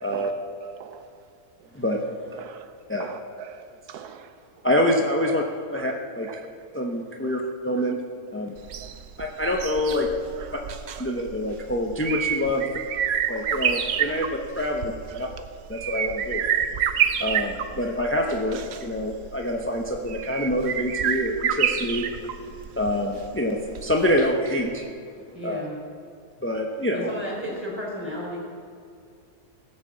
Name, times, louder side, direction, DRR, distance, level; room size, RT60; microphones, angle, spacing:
voice 1, 0.6-1.1 2.3-2.7 3.0-4.3 5.7-5.9 6.2-6.7 7.2-7.3 7.8-7.9 10.3-10.6 11.0-11.1 13.3-13.4 15.1-15.3, right 7 dB, 80° right, 1.2 m, -41 dB
voice 2, 1.7-2.4 2.9-3.1 4.6-5.4 5.7-6.4 6.7-8.0 8.3-8.5 9.2-10.1 10.5-10.6 11.0-12.7 13.3-15.3 15.7-16.5 17.2-22.1 22.7-24.8 25.4-25.6 26.4-27.1, left 1 dB, 15° left, 0.4 m, -26 dB
sound 1, 8.6-24.5 24.8-24.9, right 8 dB, 60° right, 0.7 m, -29 dB
voice 3, 25.3-25.8 26.9-28.4, equal, 5° right, 3.6 m, -33 dB
17.0 x 6.4 x 7.4 m
omnidirectional pair, 1.7 m